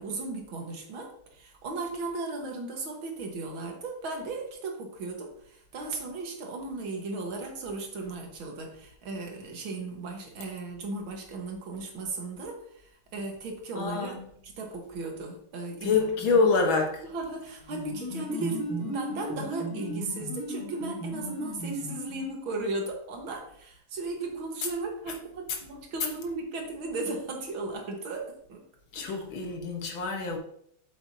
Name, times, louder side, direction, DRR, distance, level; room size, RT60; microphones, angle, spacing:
voice 1, 0.0-14.2 14.4-15.9 16.3-16.4 17.1-28.6 29.0-29.2, right 3 dB, 70° right, 2.1 m, -36 dB
voice 2, 13.8-14.3 15.8-17.1 28.9-30.4, left 4 dB, 65° left, 1.9 m, -26 dB
sound 1, 17.6-22.5, right 1 dB, 50° right, 4.0 m, -36 dB
7.9 x 7.8 x 2.7 m
omnidirectional pair, 2.4 m